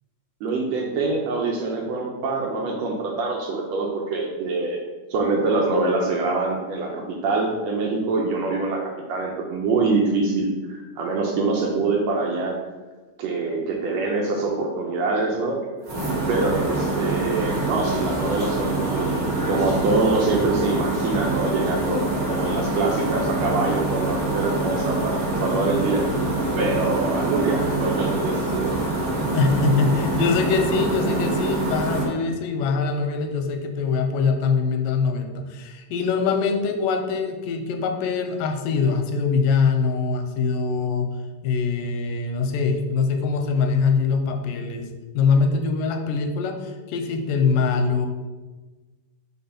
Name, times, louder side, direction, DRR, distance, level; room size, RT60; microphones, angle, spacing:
voice 1, 0.4-4.8 5.1-12.6 13.2-15.7 16.3-26.0 26.6-28.7, right 3 dB, 75° right, 0 dB, 1.6 m, -25 dB
sound 1, 15.8-32.1, right 2 dB, 40° right, 1.4 m, -25 dB
voice 2, 29.3-41.1 41.4-44.9 45.1-48.1, left 5 dB, 85° left, 5 dB, 2.2 m, -23 dB
4.7 x 3.9 x 5.7 m, 1.2 s
omnidirectional pair, 3.8 m